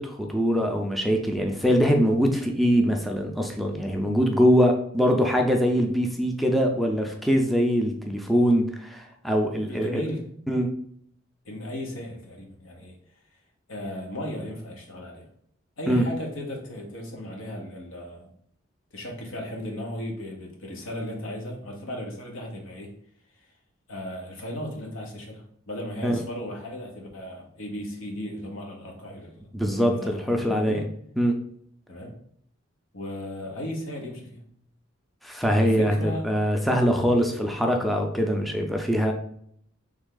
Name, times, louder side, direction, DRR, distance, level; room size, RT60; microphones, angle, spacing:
voice 1, 0.0-9.9 10.5-10.7 15.9-16.0 26.0-26.2 29.5-30.8 31.2-31.3 35.2-39.1, equal, ahead, 2 dB, 0.4 m, -23 dB
voice 2, 9.7-10.2 11.4-13.0 13.7-15.2 15.8-18.3 18.9-22.9 23.9-29.4 29.7-30.9 31.9-32.1 32.9-34.4 35.5-36.3, left 1 dB, 90° left, 1 dB, 1.1 m, -36 dB
3.5 x 3.2 x 3.8 m, 0.67 s
head